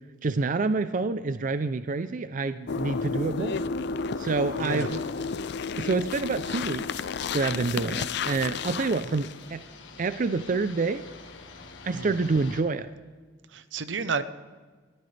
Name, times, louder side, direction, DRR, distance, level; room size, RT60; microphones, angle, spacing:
voice 1, 0.2-3.6 4.2-5.0 5.8-7.1 7.3-9.6 10.0-11.0 11.8-12.9, right 3 dB, 45° right, 12 dB, 0.5 m, -27 dB
sound 1, 2.7-9.4, left 5 dB, 60° left, 0.5 m, -32 dB
sound 2, 4.2-12.6, left 4 dB, 80° left, 1.6 m, -49 dB
voice 2, 4.6-4.9 11.9-12.2 13.5-14.2, right 5 dB, 75° right, 13 dB, 0.8 m, -31 dB
21.5 x 14.5 x 3.3 m, 1.4 s
head